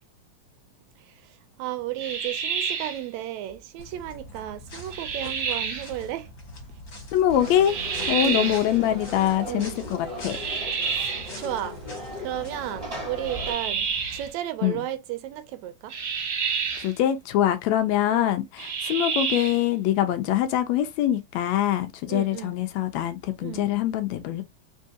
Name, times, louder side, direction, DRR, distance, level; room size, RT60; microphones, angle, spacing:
voice 1, 1.0-6.3 8.1-8.6 9.4-9.8 10.9-11.8 12.2-15.9 18.1-18.3 22.1-22.5 23.4-23.7, right 13 dB, 80° right, 1.8 m, -34 dB
sound 1, 2.0-3.0 4.9-5.9 7.7-8.7 10.3-11.4 13.3-14.3 15.9-16.9 18.6-19.6, right 6 dB, 50° right, 1.7 m, -29 dB
sound 2, 3.8-14.3, left 1 dB, 40° left, 1.4 m, -43 dB
voice 2, 7.1-7.7 8.1-10.4 14.6-14.8 16.8-24.4, left 11 dB, 75° left, 1.7 m, -24 dB
Conversation / Crowd, 7.3-13.5, left 1 dB, 15° right, 1.6 m, -38 dB
4.5 x 3.2 x 2.7 m
omnidirectional pair, 3.4 m